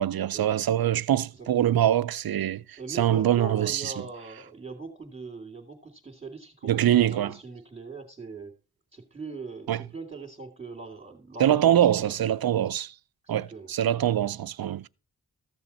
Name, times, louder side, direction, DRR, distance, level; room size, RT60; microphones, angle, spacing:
voice 1, 0.0-3.9 6.6-7.3 9.7-9.8 11.4-12.9 13.3-14.9, right 11 dB, 65° right, 0.5 m, -24 dB
voice 2, 1.3-1.8 2.8-8.5 8.9-12.2 13.2-13.7, right 3 dB, 20° right, 2.4 m, -41 dB
14.5 x 6.9 x 4.1 m
wide cardioid pair, 55°, 38 cm